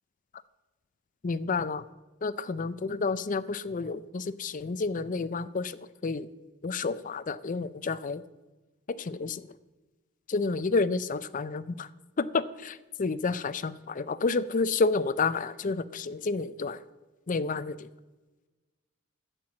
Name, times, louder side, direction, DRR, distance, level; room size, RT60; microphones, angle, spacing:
voice 1, 1.2-1.8 2.2-5.7 6.0-6.3 6.6-8.2 8.9-9.5 10.3-11.9 12.2-16.8 17.3-17.9, left 4 dB, 40° left, 14 dB, 0.5 m, -30 dB
11.0 x 7.8 x 7.4 m, 1.2 s
head